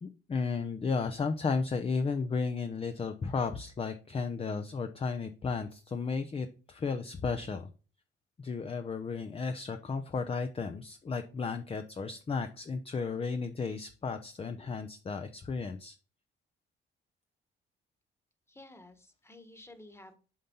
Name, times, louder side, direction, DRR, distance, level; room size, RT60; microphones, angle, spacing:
voice 1, 0.0-7.7 8.4-16.0, left 4 dB, 30° left, 8 dB, 0.7 m, -34 dB
voice 2, 18.5-20.1, left 2 dB, 15° left, 8 dB, 1.4 m, -52 dB
7.5 x 4.2 x 5.5 m, 0.36 s
cardioid pair, 90°, 20 cm